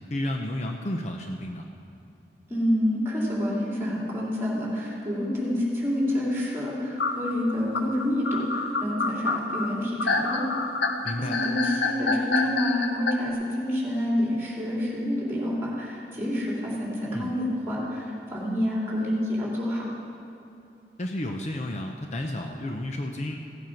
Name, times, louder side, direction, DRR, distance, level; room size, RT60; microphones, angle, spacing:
voice 1, 0.1-1.7 11.0-11.4 17.1-17.3 21.0-23.4, left 1 dB, 40° left, 3 dB, 0.6 m, -31 dB
voice 2, 2.5-10.4 11.3-19.9, left 1 dB, 15° right, -5 dB, 3.0 m, -28 dB
sound 1, 7.0-13.1, left 3 dB, 70° left, 0.8 m, -27 dB
16.0 x 7.8 x 5.9 m, 2.7 s
head